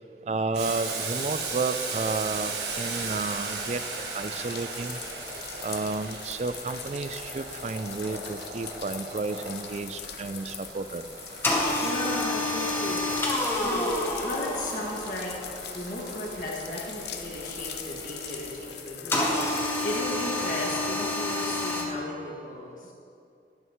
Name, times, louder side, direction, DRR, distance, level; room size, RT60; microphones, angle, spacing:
voice 1, 0.3-3.8 4.1-5.0 5.6-11.1, right 3 dB, 40° right, 12 dB, 0.3 m, -31 dB
Boiling, 0.5-19.0, right 3 dB, 75° right, 1.4 m, -38 dB
sound 1, 2.4-20.0, left 9 dB, 70° left, 0.7 m, -42 dB
sound 2, 11.4-15.4 19.1-21.8, left 2 dB, 15° left, 1.0 m, -28 dB
voice 2, 11.8-13.0 13.6-15.3 15.7-19.3 19.8-22.9, left 1 dB, 50° left, -3 dB, 2.0 m, -35 dB
12.0 x 11.0 x 3.1 m, 2.6 s
head